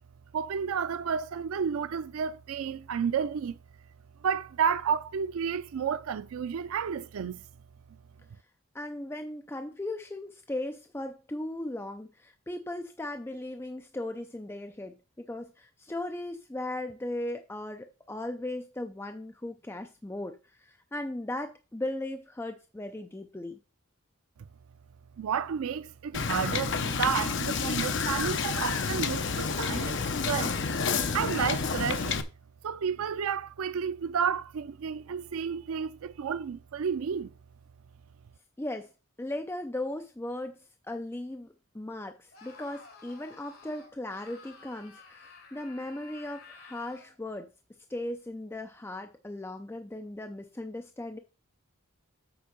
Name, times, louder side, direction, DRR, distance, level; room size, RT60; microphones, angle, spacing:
voice 1, 0.3-3.6 4.2-7.4 25.2-30.6 31.1-32.2 32.6-37.3, right 7 dB, 80° right, 0.4 m, -31 dB
voice 2, 8.7-23.6 38.6-38.9 39.2-47.5 47.9-51.2, left 1 dB, 10° left, 0.4 m, -37 dB
Wind / Boat Water vehicle, 26.1-32.2, left 5 dB, 55° left, 0.7 m, -29 dB
Screaming, 42.3-47.2, left 4 dB, 80° left, 2.7 m, -52 dB
7.9 x 4.3 x 5.2 m
head